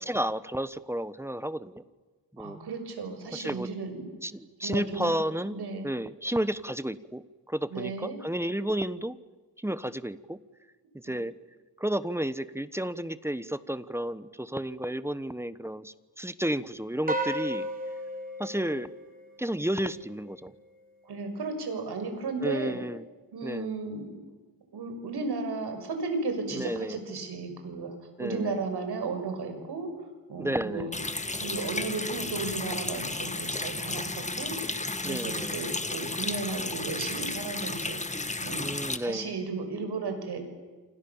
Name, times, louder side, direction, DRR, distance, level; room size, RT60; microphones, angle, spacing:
voice 1, 0.0-1.8 2.3-2.6 3.3-3.7 4.2-5.6 5.8-9.2 9.6-10.4 11.0-11.3 11.8-17.7 18.4-18.9 19.4-20.5 22.4-23.0 23.4-23.7 26.5-27.0 28.2-28.6 30.4-31.0 35.0-35.6 38.6-39.3, right 1 dB, 5° right, 15 dB, 1.1 m, -32 dB
voice 2, 2.4-4.1 4.6-5.1 5.5-5.9 7.7-8.2 21.1-22.8 23.3-24.2 24.7-29.9 30.3-31.0 31.4-34.6 35.0-38.0 38.4-40.4, right 4 dB, 85° right, 6 dB, 6.3 m, -34 dB
sound 1, 17.1-19.6, right 1 dB, 20° right, 4.4 m, -34 dB
Water tap faucet, 30.9-39.0, left 2 dB, 20° left, 1.9 m, -33 dB
28.0 x 27.5 x 7.2 m, 1.4 s
wide cardioid pair, 110°, 38 cm